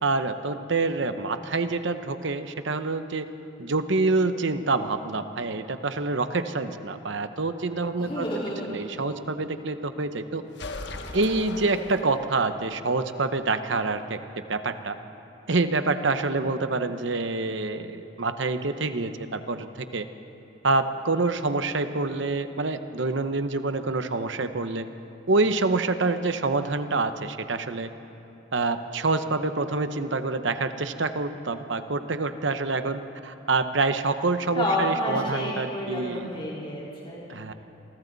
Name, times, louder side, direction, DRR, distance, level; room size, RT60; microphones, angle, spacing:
voice 1, 0.0-3.2 3.6-8.3 8.7-10.4 11.1-14.2 14.5-14.9 15.5-20.1 20.6-24.9 25.3-27.9 28.5-36.3 37.3-37.5, right 3 dB, 70° right, 9 dB, 1.0 m, -26 dB
voice 2, 8.0-8.7 34.5-37.2, left 1 dB, 25° left, -6 dB, 4.2 m, -29 dB
sound 1, 10.5-12.6, left 2 dB, 60° left, 1.2 m, -38 dB
28.5 x 23.5 x 4.1 m, 2.9 s
head